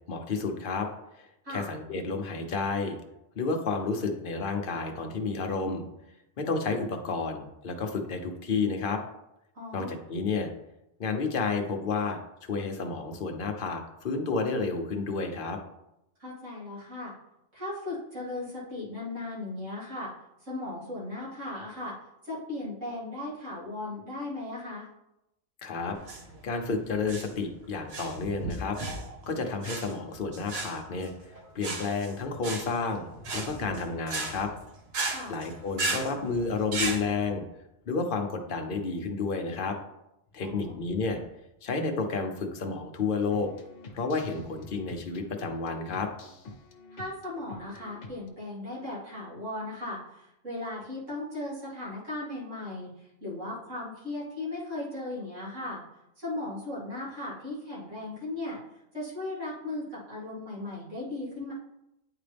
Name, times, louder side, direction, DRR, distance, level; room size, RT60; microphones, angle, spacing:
voice 1, 0.1-0.9 1.2-3.0 3.4-5.8 6.4-9.0 9.7-10.5 11.0-15.6 25.6-26.0 26.4-28.8 29.3-34.5 35.3-37.4 37.9-39.8 40.3-41.2 41.6-43.5 43.9-46.1, left 4 dB, 50° left, 4 dB, 0.9 m, -31 dB
voice 2, 9.5-10.0 16.2-17.1 17.5-20.1 20.4-21.9 22.2-24.9 35.1-35.4 40.4-40.8 46.9-55.8 56.2-58.6 58.9-61.5, left 2 dB, 75° right, -8 dB, 2.7 m, -37 dB
sound 1, 25.9-37.0, right 3 dB, 60° right, 1.1 m, -35 dB
sound 2, 32.9-34.8 36.3-38.2 40.3-42.0 44.0-45.3 45.5-45.6, left 1 dB, 30° left, 1.1 m, -50 dB
sound 3, 43.2-48.3, left 2 dB, 75° left, 1.2 m, -48 dB
9.1 x 3.9 x 3.4 m, 0.87 s
omnidirectional pair, 1.3 m